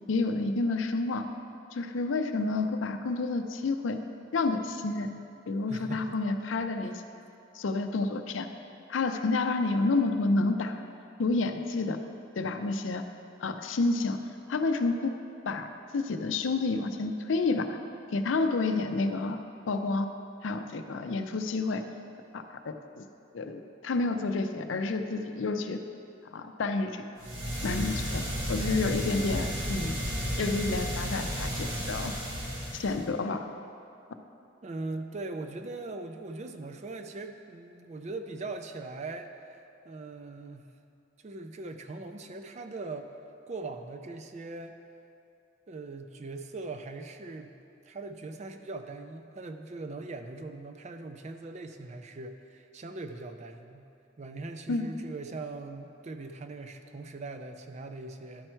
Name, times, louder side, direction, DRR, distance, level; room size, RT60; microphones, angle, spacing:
voice 1, 0.1-1.3 1.7-4.0 4.3-5.2 5.5-6.9 7.5-8.5 8.9-10.8 11.2-12.0 12.4-13.1 13.4-14.2 14.5-15.2 15.5-15.7 15.9-17.8 18.1-20.1 20.4-21.8 22.3-23.1 23.3-25.8 26.3-27.0 27.6-28.2 28.5-30.0 30.4-32.2 32.7-33.5 54.7-54.9, left 3 dB, 80° left, 7 dB, 0.5 m, -29 dB
voice 2, 5.7-6.2 6.8-6.9 34.6-39.3 39.8-40.7 41.2-43.1 43.5-44.8 45.7-47.5 47.9-53.9 54.2-58.5, right 3 dB, 35° right, 6 dB, 0.4 m, -40 dB
sound 1, 27.2-33.1, equal, 85° right, 1.6 m, -33 dB
11.0 x 4.4 x 4.4 m, 2.6 s
head